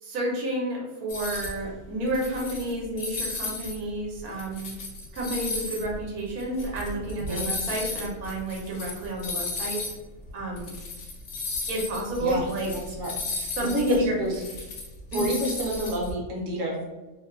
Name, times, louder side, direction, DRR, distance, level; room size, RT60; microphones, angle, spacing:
voice 1, 0.0-4.7 5.1-9.8 10.3-10.7 11.7-12.7 13.5-14.2 15.1-15.3, right 1 dB, 85° right, -2 dB, 1.2 m, -30 dB
sound 1, 1.1-1.6 2.0-3.7 4.2-9.9 10.3-10.4 10.6-16.1, left 3 dB, 65° left, 0.6 m, -34 dB
voice 2, 7.2-7.5 12.2-12.5 13.0-14.4 15.1-16.9, right 1 dB, 65° right, -2 dB, 1.0 m, -29 dB
2.9 x 2.2 x 2.2 m, 1.1 s
omnidirectional pair, 1.5 m